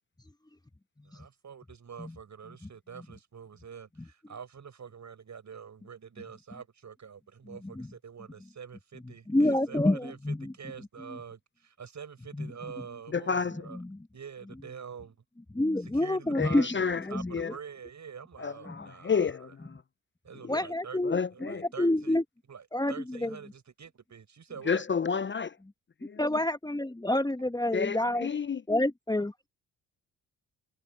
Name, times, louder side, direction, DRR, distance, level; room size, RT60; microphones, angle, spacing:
voice 1, 1.0-13.8 14.1-15.2 15.8-19.2 20.2-22.2 22.5-24.8, right 7 dB, 45° right, 7.2 m, -46 dB
voice 2, 9.3-10.5 12.4-12.5 15.5-16.7 17.1-17.5 18.7-18.8 20.5-22.2 22.7-23.3 26.2-28.3 28.7-29.3, left 1 dB, 10° left, 1.9 m, -28 dB
voice 3, 13.1-13.6 16.3-17.6 18.4-19.8 20.4-20.7 21.0-21.7 24.7-25.6 26.0-26.2 27.7-28.6, left 6 dB, 30° left, 0.9 m, -31 dB
figure-of-eight pair, 40°, 39 cm